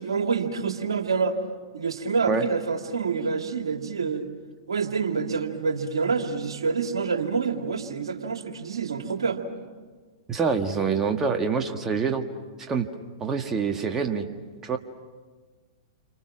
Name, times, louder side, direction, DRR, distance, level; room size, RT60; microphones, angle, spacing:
voice 1, 0.0-1.4 1.7-4.3 4.7-9.4, right 5 dB, 80° right, 4 dB, 2.4 m, -27 dB
voice 2, 10.3-12.2 12.7-12.9 13.2-14.2 14.6-14.8, right 5 dB, 20° right, 4 dB, 1.7 m, -25 dB
29.0 x 25.5 x 6.1 m, 1.4 s
hypercardioid pair, 110°, 3 cm